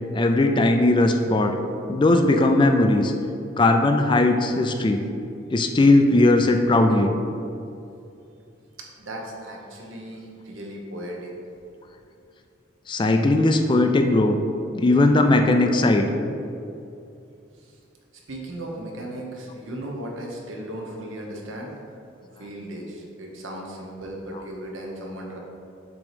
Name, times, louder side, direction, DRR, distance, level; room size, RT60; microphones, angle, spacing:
voice 1, 0.1-1.5 1.9-3.1 3.6-5.0 5.5-7.1 12.9-14.4 14.7-16.1, left 2 dB, 25° left, 5 dB, 0.3 m, -18 dB
voice 2, 9.0-11.3 17.6-17.7 18.3-21.7 22.4-25.4, right 1 dB, 80° right, -1 dB, 1.1 m, -36 dB
7.0 x 3.0 x 4.9 m, 2.6 s
head